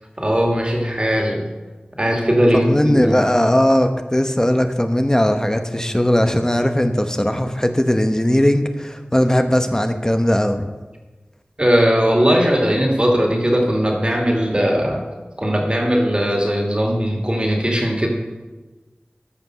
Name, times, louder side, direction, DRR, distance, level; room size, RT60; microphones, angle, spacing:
voice 1, 0.2-1.5 2.0-3.2 11.6-15.0 15.4-18.1, equal, 30° right, 1 dB, 2.4 m, -18 dB
voice 2, 2.5-10.7, left 1 dB, 15° left, 7 dB, 0.9 m, -18 dB
13.5 x 5.3 x 6.4 m, 1.2 s
wide cardioid pair, 45°, 3 cm